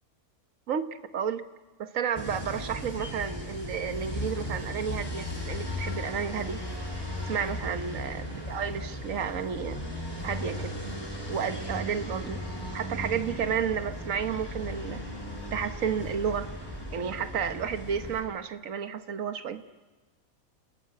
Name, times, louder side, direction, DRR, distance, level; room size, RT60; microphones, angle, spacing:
voice 1, 1.1-1.4 1.8-6.6 7.3-9.8 10.2-10.8 11.3-12.5 12.7-15.0 15.5-16.5 16.9-19.6, right 7 dB, 65° right, 9 dB, 1.5 m, -31 dB
sound 1, 2.1-18.2, equal, 15° left, 6.1 m, -36 dB
30.0 x 15.0 x 9.5 m, 1.2 s
omnidirectional pair, 1.5 m